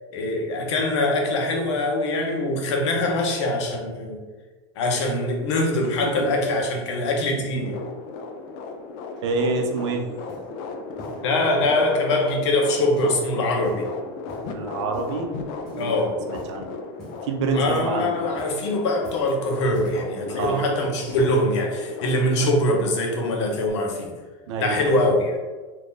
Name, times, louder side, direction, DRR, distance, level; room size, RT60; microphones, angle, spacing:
voice 1, 0.1-4.2 4.8-7.8 11.2-13.9 15.8-16.2 17.5-24.1 24.6-25.4, left 1 dB, 90° left, 1 dB, 0.8 m, -23 dB
voice 2, 6.0-6.4 9.2-10.0 14.5-15.3 15.7-16.7 17.2-18.1 20.3-20.6 24.5-24.9, right 3 dB, 85° right, 4 dB, 0.6 m, -27 dB
sound 1, 7.5-23.7, left 4 dB, 45° left, 0.3 m, -36 dB
sound 2, 9.1-9.9 10.3-10.5 10.9-11.9 12.3-13.3 13.5-13.9 14.3-14.6 14.9-15.3 15.6-16.0 16.2-16.6 17.0-18.0 18.2-18.6 18.9-19.4 19.7-20.7 21.1-21.4 22.1-22.2, equal, 5° left, 1.2 m, -46 dB
2.7 x 2.5 x 3.7 m, 1.3 s
supercardioid pair, 165°, 14 cm